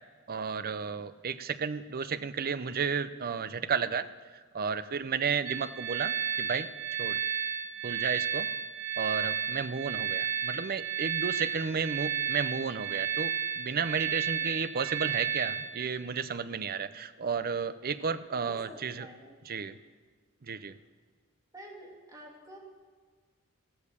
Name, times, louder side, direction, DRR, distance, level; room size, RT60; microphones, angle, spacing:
voice 1, 0.3-4.1 4.3-6.7 7.0-7.2 7.8-8.5 9.0-19.1 19.4-19.8 20.4-20.8, right 6 dB, 45° right, 13 dB, 0.6 m, -33 dB
sound 1, 5.5-15.9, right 9 dB, 70° right, 1.1 m, -32 dB
voice 2, 18.3-19.4 21.5-22.6, equal, 15° right, -2 dB, 2.6 m, -49 dB
15.0 x 13.5 x 6.9 m, 1.5 s
head